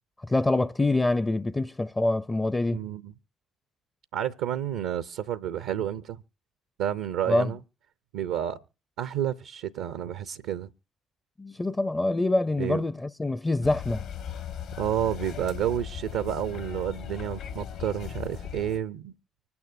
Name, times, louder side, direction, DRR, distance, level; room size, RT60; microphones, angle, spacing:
voice 1, 0.2-2.8 7.3-7.5 11.4-14.0, left 2 dB, 20° left, 0.5 m, -25 dB
voice 2, 2.7-3.1 4.1-6.2 6.8-7.6 8.1-8.6 9.0-10.7 12.6-12.8 14.8-19.1, right 10 dB, 75° right, 0.5 m, -30 dB
sound 1, 13.6-18.8, left 8 dB, 70° left, 1.7 m, -37 dB
25.0 x 9.5 x 2.6 m
hypercardioid pair, 55°, 0 cm